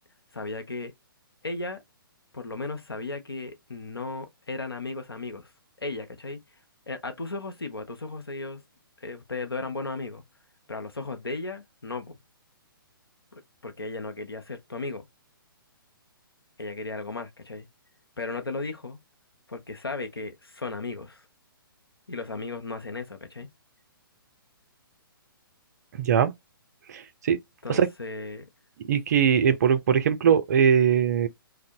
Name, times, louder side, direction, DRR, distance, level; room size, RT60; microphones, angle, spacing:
voice 1, 0.3-0.9 1.4-1.8 2.3-5.5 5.8-6.4 6.9-8.6 9.0-10.2 10.7-12.2 13.3-15.0 16.6-17.7 18.2-19.0 19.5-21.3 22.1-23.5 27.6-28.5, left 3 dB, 85° left, 0.6 m, -35 dB
voice 2, 26.0-26.3 26.9-27.4 27.7-27.9 28.8-31.3, right 8 dB, 45° right, 0.4 m, -21 dB
2.5 x 2.1 x 2.7 m
figure-of-eight pair, 125°, 12 cm